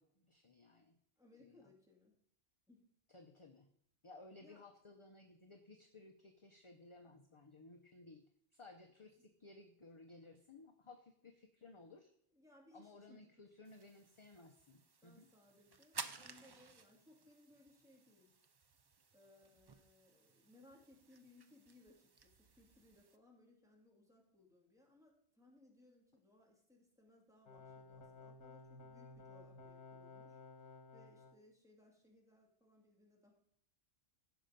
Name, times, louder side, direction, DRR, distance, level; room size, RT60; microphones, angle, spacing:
voice 1, 0.0-1.0 1.4-1.7 3.1-3.7 4.0-8.2 8.5-12.1 12.7-15.3, left 2 dB, 30° left, 5 dB, 0.7 m, -59 dB
voice 2, 1.2-2.2 2.7-2.8 4.4-4.6 9.0-9.1 12.3-13.3 15.0-18.3 19.1-33.3, left 2 dB, 5° right, -2 dB, 2.6 m, -66 dB
sound 1, 13.7-23.2, right 4 dB, 40° right, 0.3 m, -55 dB
sound 2, 27.5-31.4, left 3 dB, 80° left, 1.4 m, -56 dB
15.5 x 5.7 x 5.2 m, 0.70 s
omnidirectional pair, 1.1 m